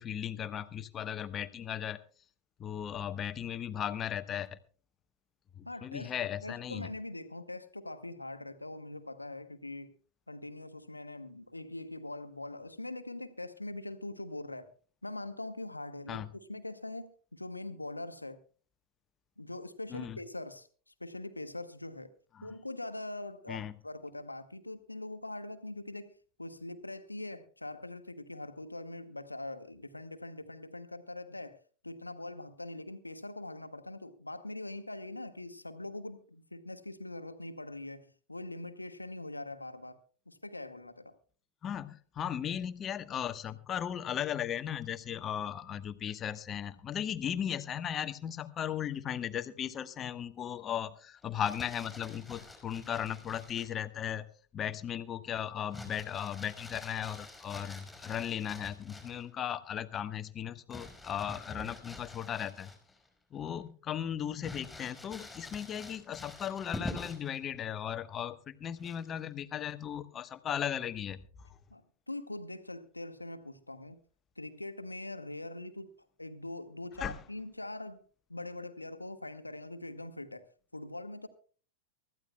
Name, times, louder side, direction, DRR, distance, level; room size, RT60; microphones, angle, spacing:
voice 1, 0.0-2.0 2.6-4.6 5.6-6.9 16.1-16.3 19.9-20.2 22.4-22.5 23.5-23.7 41.6-54.3 54.5-62.7 63.3-71.2 77.0-77.2, left 9 dB, 25° left, 12 dB, 1.1 m, -37 dB
voice 2, 5.6-9.9 10.3-14.7 15.0-18.4 19.4-22.1 22.4-40.0 40.2-41.2 71.7-74.0 74.4-81.3, left 2 dB, 85° left, 9 dB, 1.3 m, -43 dB
Crumpling crinkling, 51.2-53.8 55.7-59.3 60.7-63.1 63.5-63.6 64.4-67.4 68.8-69.2, left 2 dB, 5° left, 4.7 m, -46 dB
24.0 x 14.5 x 2.2 m, 0.40 s
figure-of-eight pair, 90°, 0 cm